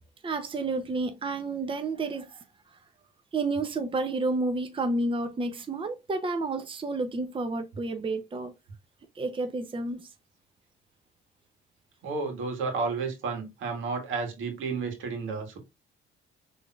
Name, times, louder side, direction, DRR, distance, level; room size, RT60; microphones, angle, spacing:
voice 1, 0.2-2.4 3.3-8.5 9.2-10.1, right 3 dB, 25° right, 0.7 m, -30 dB
voice 2, 12.0-15.6, right 4 dB, 85° right, 1.8 m, -32 dB
5.9 x 3.4 x 2.4 m
cardioid pair, 90°, 20 cm